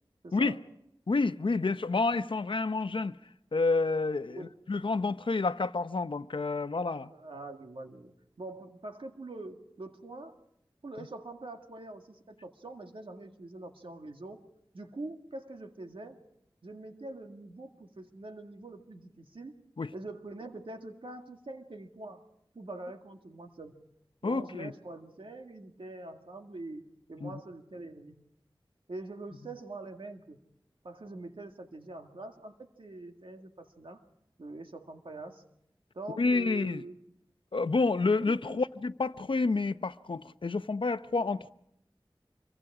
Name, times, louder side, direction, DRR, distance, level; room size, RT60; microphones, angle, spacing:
voice 1, 0.2-0.6 4.3-4.5 4.8-5.0 7.1-10.4 10.8-14.5 14.7-16.2 16.6-19.6 19.9-22.2 22.5-23.8 24.2-28.2 28.9-30.4 30.8-34.0 34.4-35.4 35.9-37.0 38.2-38.6, right 2 dB, 85° right, 2.0 m, -44 dB
voice 2, 1.1-3.1 3.5-7.1 19.8-19.9 24.2-24.7 27.2-27.4 36.2-36.8 37.5-41.5, left 3 dB, 75° left, 0.7 m, -29 dB
26.5 x 24.0 x 4.9 m
wide cardioid pair, 55°, 9 cm